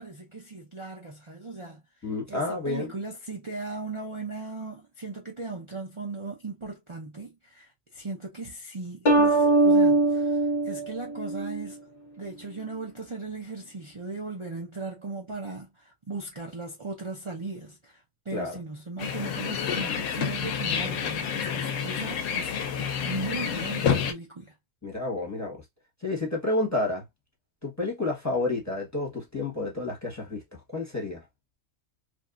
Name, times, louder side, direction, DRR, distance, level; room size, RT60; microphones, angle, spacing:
voice 1, 0.0-1.8 2.3-11.8 12.2-22.5 22.8-24.5, right 3 dB, 45° right, 0.4 m, -38 dB
voice 2, 2.0-2.9 18.3-18.6 21.3-21.6 24.8-25.6 26.0-27.0 27.6-31.2, left 2 dB, 15° left, 0.9 m, -30 dB
sound 1, 9.1-11.7, right 2 dB, 50° left, 0.5 m, -22 dB
sound 2, 19.0-24.1, left 7 dB, 70° left, 0.9 m, -29 dB
2.9 x 2.6 x 2.3 m
omnidirectional pair, 1.5 m